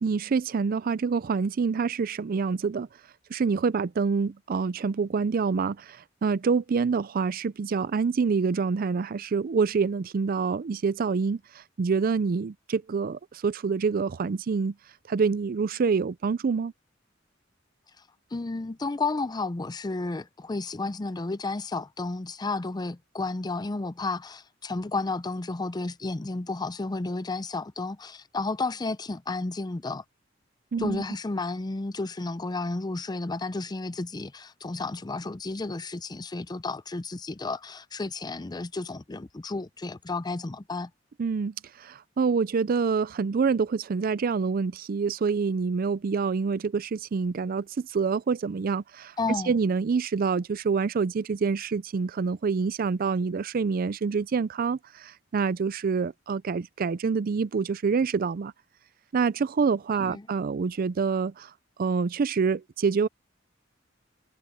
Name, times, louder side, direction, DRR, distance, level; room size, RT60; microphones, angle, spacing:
voice 1, 0.0-2.9 3.3-14.7 15.1-16.7 30.7-31.0 41.2-49.1 49.5-58.5 59.1-61.5 61.8-63.1, right 5 dB, 45° right, 0.4 m, -26 dB
voice 2, 18.3-30.0 30.8-40.9 49.2-49.6 60.0-60.3, left 3 dB, 20° left, 0.5 m, -32 dB
head